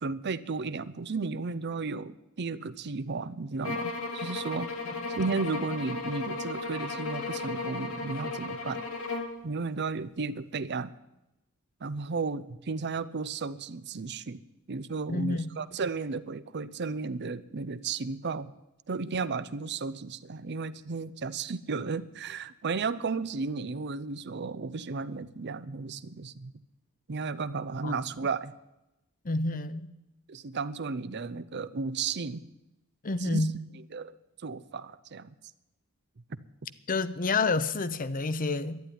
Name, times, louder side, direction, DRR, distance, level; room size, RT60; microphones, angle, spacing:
voice 1, 0.0-4.7 5.1-8.8 9.4-10.9 11.8-14.4 14.7-18.5 18.9-26.5 27.1-28.5 30.3-32.4 33.2-33.5 33.7-34.1 34.4-35.3, right 4 dB, 50° right, 15 dB, 0.6 m, -34 dB
sound 1, 3.6-9.4, left 3 dB, 75° left, 2.0 m, -35 dB
voice 2, 15.1-15.5 27.8-27.9 29.2-29.9 33.0-33.5 36.9-38.8, left 3 dB, 40° left, 13 dB, 0.7 m, -29 dB
11.5 x 10.5 x 9.9 m, 0.92 s
head